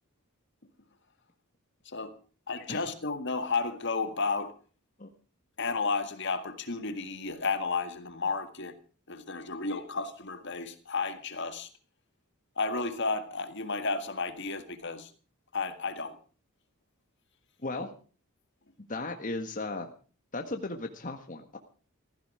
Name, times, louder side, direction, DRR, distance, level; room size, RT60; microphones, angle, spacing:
voice 1, 1.9-2.2 2.5-4.5 5.6-8.7 9.1-11.7 12.6-15.1 15.5-16.2, left 4 dB, 55° left, 1.8 m, -32 dB
voice 2, 18.9-19.9 20.3-21.6, left 2 dB, 35° left, 1.6 m, -36 dB
15.5 x 15.5 x 5.0 m
head